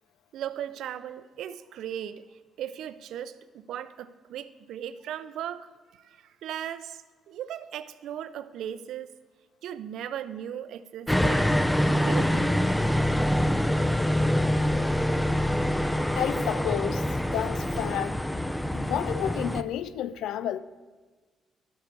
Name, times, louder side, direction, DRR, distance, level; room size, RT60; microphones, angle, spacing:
voice 1, 0.3-2.2 2.6-5.7 5.9-9.1 9.6-11.5 11.8-12.5, right 10 dB, 80° right, 0.4 m, -37 dB
sound 1, 11.1-19.6, equal, 5° left, 0.5 m, -25 dB
voice 2, 16.1-17.0 17.3-18.2 18.7-20.6, left 10 dB, 80° left, 0.4 m, -30 dB
12.0 x 8.4 x 4.7 m
cardioid pair, 90°, 0 cm